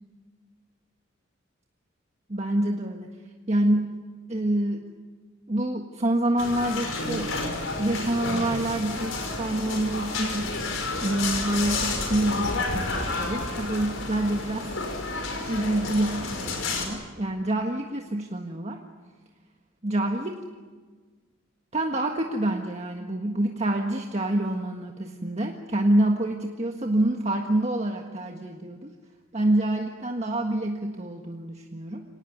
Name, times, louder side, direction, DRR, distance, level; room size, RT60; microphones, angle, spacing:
voice 1, 2.3-3.1 3.5-3.9 4.3-4.8 5.5-7.3 7.8-10.5 11.0-14.8 15.1-18.8 19.8-20.4 21.7-28.9 29.3-32.0, right 1 dB, 35° right, 2 dB, 1.6 m, -27 dB
sound 1, 6.4-16.9, left 3 dB, 75° left, 5.5 m, -30 dB
26.0 x 19.0 x 9.4 m, 1.4 s
head